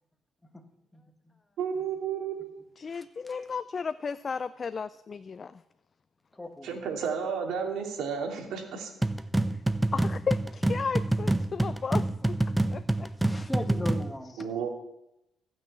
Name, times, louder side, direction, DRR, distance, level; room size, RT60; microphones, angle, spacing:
voice 1, 1.6-2.4 6.6-8.9 14.4-14.7, right 6 dB, 80° right, 2 dB, 2.7 m, -32 dB
voice 2, 2.8-5.6 9.9-12.4 12.7-13.1, left 5 dB, 40° left, 14 dB, 0.4 m, -34 dB
voice 3, 6.3-6.9 13.2-14.7, left 1 dB, 10° left, 5 dB, 1.6 m, -38 dB
sound 1, 9.0-14.1, right 1 dB, 10° right, 0.6 m, -27 dB
15.5 x 6.3 x 8.5 m, 0.88 s
cardioid pair, 90°, 0 cm